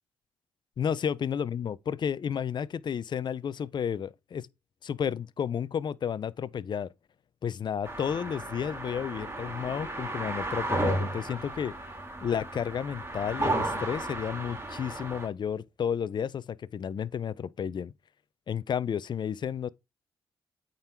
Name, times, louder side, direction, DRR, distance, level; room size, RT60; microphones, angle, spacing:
voice 1, 0.8-4.5 4.8-6.9 7.4-11.7 12.2-17.9 18.5-19.7, left 8 dB, 50° left, 0.5 m, -32 dB
sound 1, 7.9-15.3, right 1 dB, 25° right, 2.5 m, -34 dB
8.7 x 3.8 x 4.5 m
supercardioid pair, 55°, 10 cm